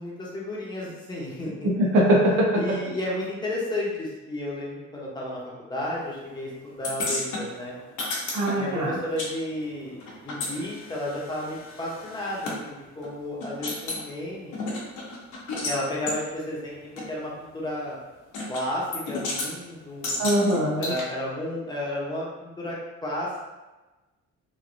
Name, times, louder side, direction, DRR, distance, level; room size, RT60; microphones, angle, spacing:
voice 1, 0.0-1.7 2.5-7.7 8.5-14.6 15.6-16.8 17.1-18.0 18.5-20.4 20.8-23.5, left 1 dB, 15° left, -5 dB, 0.7 m, -32 dB
voice 2, 1.6-2.5 8.3-8.9 20.2-20.9, right 1 dB, 90° right, -2 dB, 0.7 m, -21 dB
sound 1, 6.8-9.3 9.6-12.6 13.0-13.1 13.4-14.0 14.5-15.8 16.1-16.2 17.0-17.1 18.3-18.6 18.9-19.5 20.0-21.0, left 2 dB, 75° left, 0.8 m, -32 dB
3.0 x 2.5 x 2.5 m, 1.1 s
cardioid pair, 145°, 30 cm